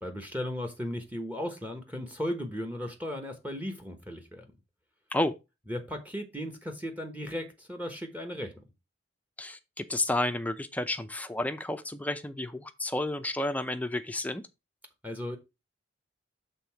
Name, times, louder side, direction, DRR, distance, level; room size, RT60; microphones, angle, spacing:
voice 1, 0.0-4.5 5.7-8.5 15.0-15.4, equal, 10° right, 1.1 m, -36 dB
voice 2, 9.4-14.4, left 1 dB, 10° left, 0.6 m, -31 dB
6.9 x 3.7 x 5.7 m
head